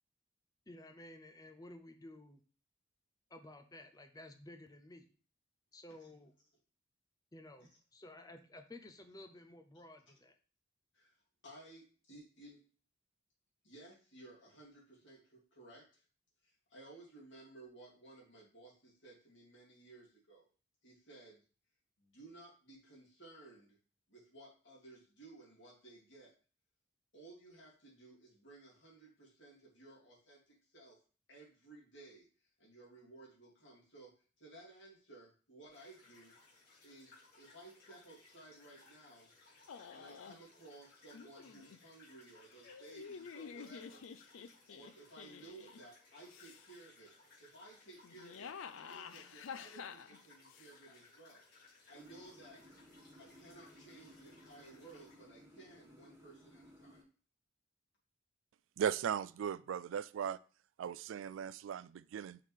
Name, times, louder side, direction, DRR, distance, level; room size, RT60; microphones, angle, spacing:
voice 1, 0.7-2.4 3.3-5.1 5.7-6.3 7.3-10.4, left 1 dB, 20° left, 0.6 m, -54 dB
voice 2, 11.4-12.6 13.6-16.0 16.4-20.5 20.8-21.4 22.0-23.8 24.1-26.3 27.1-31.0 31.3-34.1 34.4-36.3 36.8-39.3 39.9-44.0 44.7-47.1 47.4-52.6 53.2-57.0, right 2 dB, 65° left, 3.0 m, -57 dB
sound 1, 35.7-55.3, left 3 dB, 50° left, 2.8 m, -63 dB
sound 2, 39.7-40.4 41.1-41.8 42.6-45.8 46.3-46.9 48.0-50.7, left 6 dB, 85° left, 0.4 m, -50 dB
sound 3, 51.9-57.0, equal, 15° right, 1.5 m, -60 dB
voice 3, 58.8-60.4 60.8-62.4, right 8 dB, 75° right, 0.3 m, -37 dB
5.8 x 3.6 x 4.8 m
head